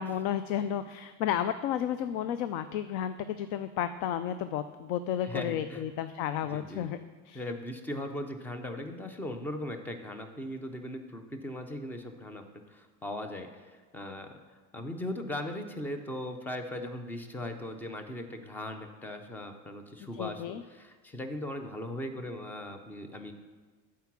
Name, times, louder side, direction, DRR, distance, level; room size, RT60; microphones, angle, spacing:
voice 1, 0.0-7.0 7.3-7.4 20.1-20.6, left 10 dB, 60° left, 11 dB, 0.5 m, -32 dB
voice 2, 5.2-5.9 6.5-6.9 7.3-14.3 14.7-23.3, left 1 dB, 5° left, 7 dB, 0.3 m, -39 dB
14.0 x 4.7 x 5.9 m, 1.4 s
cardioid pair, 160°, 40 cm